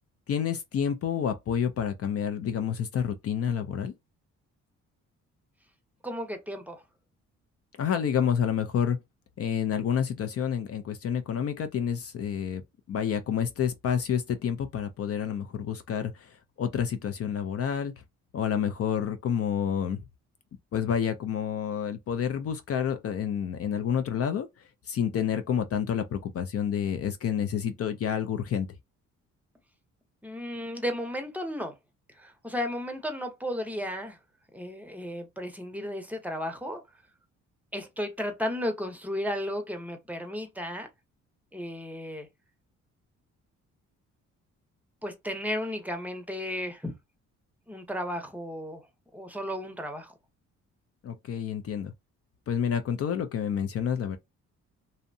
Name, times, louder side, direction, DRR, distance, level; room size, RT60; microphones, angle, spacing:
voice 1, 0.3-3.9 7.8-9.0 9.4-12.6 12.9-17.9 18.3-20.0 20.7-24.5 24.9-28.7 51.0-51.9 52.5-54.2, left 8 dB, 50° left, 0.5 m, -29 dB
voice 2, 6.0-6.8 30.2-31.7 32.2-34.2 34.5-36.8 37.7-40.9 41.5-42.3 45.0-46.9 47.7-48.8 49.1-50.1, equal, 5° right, 0.7 m, -34 dB
2.7 x 2.1 x 2.6 m
cardioid pair, 90°, 30 cm